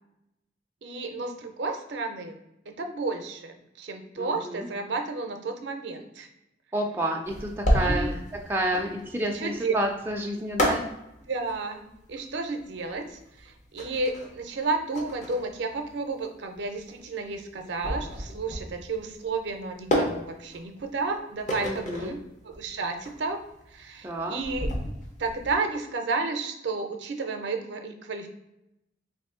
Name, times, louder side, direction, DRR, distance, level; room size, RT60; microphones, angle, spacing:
voice 1, 0.8-2.4 2.7-6.3 7.7-8.1 9.3-9.7 11.3-22.2 22.4-23.4 23.7-24.7 25.2-28.3, right 3 dB, 70° right, 5 dB, 0.5 m, -32 dB
voice 2, 4.2-4.7 6.7-8.2 8.5-10.9 21.6-22.2 24.0-24.4, right 1 dB, 10° right, 0 dB, 0.3 m, -30 dB
sound 1, 7.2-25.5, equal, 40° left, 0.6 m, -31 dB
3.0 x 2.5 x 3.6 m, 0.85 s
head